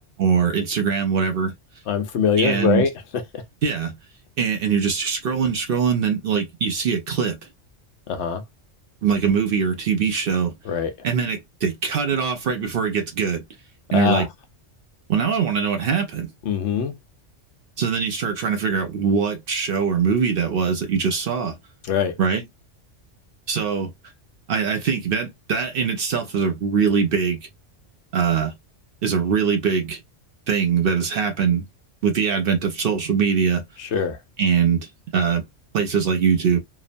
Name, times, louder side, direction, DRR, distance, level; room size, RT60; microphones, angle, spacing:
voice 1, 0.2-1.5 2.4-2.8 3.6-4.0 4.4-7.4 9.0-10.5 11.0-13.4 13.9-14.3 15.1-16.3 17.8-21.6 22.2-22.4 23.5-23.9 24.5-27.5 28.1-28.5 29.0-30.0 30.5-31.6 32.0-33.6 34.4-35.4 35.7-36.6, right 6 dB, 60° right, 0.7 m, -22 dB
voice 2, 1.9-3.4 8.1-8.4 10.6-10.9 13.9-14.3 16.4-16.9 21.9-22.1 33.8-34.2, left 7 dB, 70° left, 0.9 m, -23 dB
2.9 x 2.0 x 2.5 m
omnidirectional pair, 1.2 m